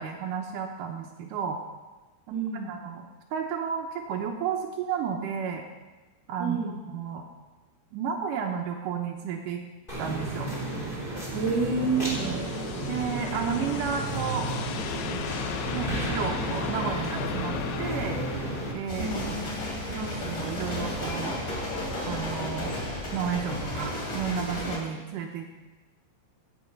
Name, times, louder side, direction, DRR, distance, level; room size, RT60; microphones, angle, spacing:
voice 1, 0.0-1.6 2.3-2.4 2.7-3.1 3.3-5.7 6.3-7.2 7.9-9.6 10.0-10.5 12.2-12.4 12.9-14.5 15.7-18.2 18.7-19.1 19.9-21.4 22.0-22.8 23.1-25.4, right 7 dB, 85° right, 1 dB, 1.8 m, -32 dB
voice 2, 2.3-2.8 6.4-6.8 11.3-12.2 19.0-19.3, right 4 dB, 50° right, 1 dB, 2.2 m, -28 dB
sound 1, 9.9-18.7, right 2 dB, 15° left, 2.9 m, -33 dB
sound 2, 10.6-18.8, left 9 dB, 85° left, 3.1 m, -36 dB
sound 3, 18.9-24.8, left 1 dB, 40° left, 3.5 m, -33 dB
16.0 x 8.1 x 5.3 m, 1.2 s
omnidirectional pair, 5.1 m